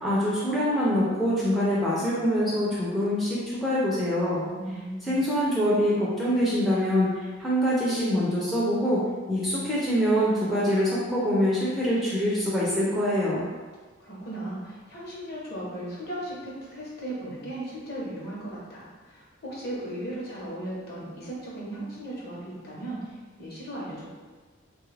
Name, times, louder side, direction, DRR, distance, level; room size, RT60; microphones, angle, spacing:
voice 1, 0.0-4.5 5.1-13.4, equal, ahead, -8 dB, 0.4 m, -25 dB
voice 2, 4.5-5.2 14.0-24.1, right 1 dB, 50° left, -5 dB, 0.8 m, -37 dB
3.2 x 2.3 x 3.1 m, 1.4 s
head